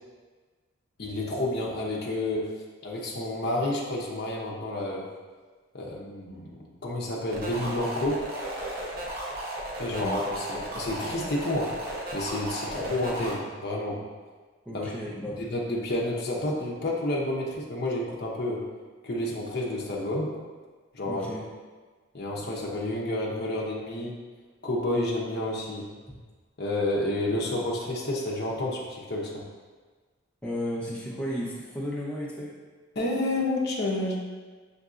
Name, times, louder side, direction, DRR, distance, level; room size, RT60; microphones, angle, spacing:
voice 1, 1.0-2.5 2.8-5.0 5.7-8.2 9.8-11.7 12.1-14.0 14.7-14.9 15.5-18.6 19.0-20.3 20.9-21.3 22.1-24.2 24.6-25.9 26.6-29.4 32.9-34.2, left 1 dB, 45° left, -3 dB, 0.7 m, -30 dB
sound 1, 7.3-13.3, right 1 dB, 45° right, 0.7 m, -35 dB
voice 2, 14.7-15.4 21.0-21.4 30.4-32.5, equal, 5° left, -6 dB, 0.7 m, -34 dB
6.6 x 2.6 x 2.4 m, 1.4 s
head